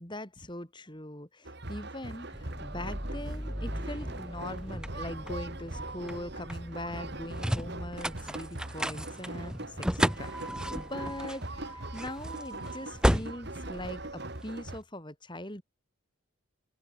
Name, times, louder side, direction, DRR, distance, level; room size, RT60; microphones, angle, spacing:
voice 1, 0.0-10.3 10.9-15.6, left 1 dB, 20° left, 4.2 m, -41 dB
sound 1, 1.4-14.8, right 2 dB, 50° right, 2.5 m, -41 dB
sound 2, 2.3-14.7, equal, 5° right, 1.6 m, -34 dB
open air
head